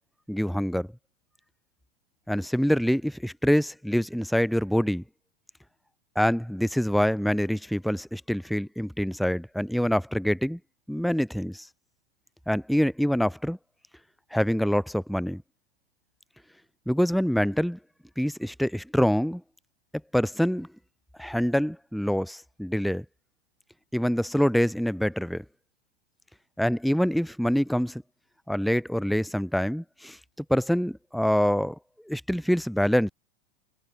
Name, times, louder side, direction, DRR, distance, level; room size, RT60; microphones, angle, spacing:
voice 1, 0.3-0.9 2.3-5.0 6.2-10.6 10.9-11.7 12.5-13.6 14.3-15.4 16.9-17.8 18.2-19.4 20.1-20.7 21.2-23.1 23.9-25.4 26.6-28.0 28.5-30.2 30.5-31.8 32.1-33.1, equal, ahead, 1.7 m, -25 dB
hypercardioid pair, 110°, 31 cm